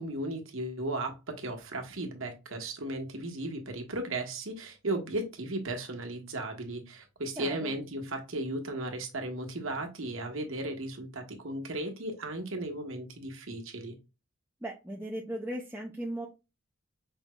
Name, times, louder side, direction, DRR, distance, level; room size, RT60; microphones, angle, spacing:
voice 1, 0.0-13.9, right 2 dB, 70° right, 1.2 m, -36 dB
voice 2, 7.4-7.7 14.6-16.3, right 1 dB, 10° right, 0.5 m, -37 dB
5.3 x 3.1 x 2.2 m
head